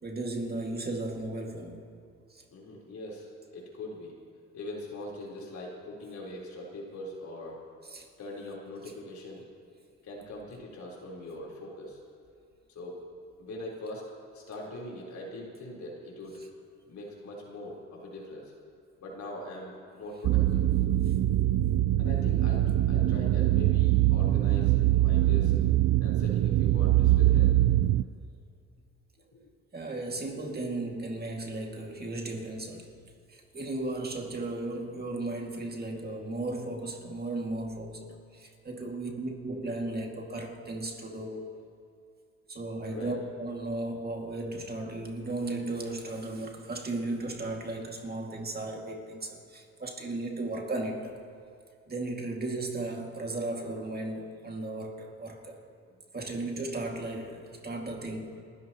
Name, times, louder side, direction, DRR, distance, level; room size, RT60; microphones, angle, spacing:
voice 1, 0.0-1.8 2.3-2.4 7.8-8.1 29.7-32.9 33.3-41.5 42.5-51.1 51.9-55.6 56.1-58.4, right 2 dB, 30° right, 1 dB, 2.3 m, -35 dB
voice 2, 2.5-4.1 4.5-7.6 8.2-9.4 10.0-12.0 12.7-13.1 13.4-14.1 14.3-16.4 16.9-18.5 19.0-20.6 22.0-25.5 26.0-27.5 29.3-29.5 38.8-38.9 42.9-43.1, left 1 dB, 70° left, -3 dB, 4.1 m, -42 dB
sound 1, 20.2-28.0, right 14 dB, 60° right, 0.5 m, -23 dB
29.0 x 14.0 x 3.0 m, 2.4 s
cardioid pair, 90°, 30 cm